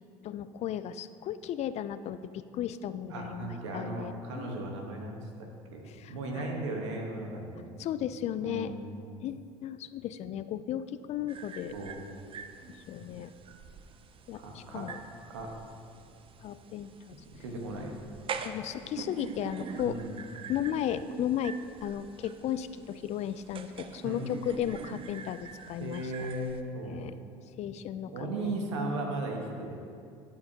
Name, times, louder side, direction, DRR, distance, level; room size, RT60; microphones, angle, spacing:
voice 1, 0.2-4.5 5.8-6.4 7.8-8.7 9.2-11.7 12.9-13.3 14.3-15.0 16.4-17.2 18.4-20.0 20.5-26.3 26.8-27.2 27.5-28.5, left 10 dB, 50° left, 13 dB, 0.4 m, -35 dB
voice 2, 3.1-7.7 8.4-8.9 11.7-12.0 13.0-13.1 14.3-14.9 15.3-15.5 17.3-17.9 19.8-20.1 24.0-24.2 25.8-27.0 28.1-29.9, right 2 dB, 90° right, 1 dB, 1.2 m, -37 dB
sound 1, 11.3-26.6, right 5 dB, 40° right, 0.5 m, -45 dB
13.0 x 5.7 x 2.8 m, 2.4 s
hypercardioid pair, 80°, 15 cm